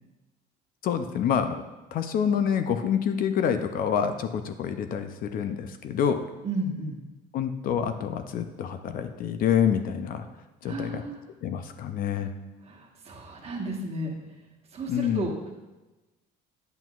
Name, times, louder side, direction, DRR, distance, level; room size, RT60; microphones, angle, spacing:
voice 1, 0.8-1.6 1.9-6.3 7.3-10.3 10.6-11.0 11.4-12.3 14.9-15.3, left 8 dB, 50° left, 8 dB, 0.5 m, -27 dB
voice 2, 6.4-7.0 10.6-11.2 12.7-14.1 14.7-15.3, right 2 dB, 35° right, 0 dB, 1.3 m, -33 dB
9.1 x 7.8 x 2.4 m, 1.1 s
cardioid pair, 140°, 19 cm